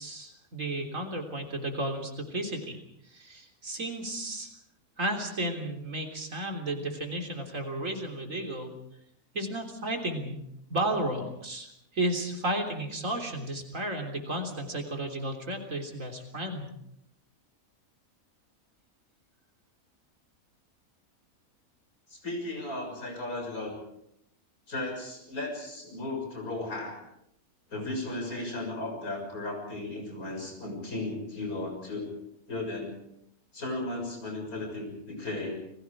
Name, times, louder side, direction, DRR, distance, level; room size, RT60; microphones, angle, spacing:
voice 1, 0.0-2.8 3.1-4.5 5.0-8.7 9.3-10.4 10.7-16.7, right 1 dB, 65° right, 4 dB, 3.8 m, -33 dB
voice 2, 22.1-23.7 24.7-27.0 27.7-32.1 32.5-33.0 33.5-35.6, left 2 dB, 85° left, 2 dB, 7.0 m, -35 dB
29.5 x 21.0 x 4.9 m, 0.77 s
omnidirectional pair, 1.5 m